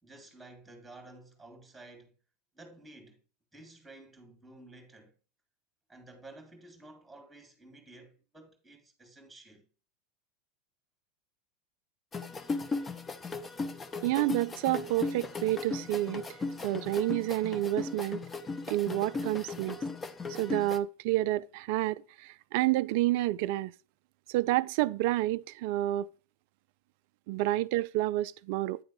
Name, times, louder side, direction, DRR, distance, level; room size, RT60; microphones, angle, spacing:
voice 1, 0.0-2.2 2.5-3.2 3.5-5.1 5.9-9.7, right 2 dB, 5° right, 2.1 m, -52 dB
sound 1, 12.1-20.8, left 3 dB, 20° left, 0.7 m, -37 dB
voice 2, 14.0-18.2 18.7-19.8 20.3-23.7 24.3-26.1 27.3-28.8, right 16 dB, 60° right, 0.3 m, -29 dB
9.1 x 3.4 x 5.4 m
hypercardioid pair, 95°, 0 cm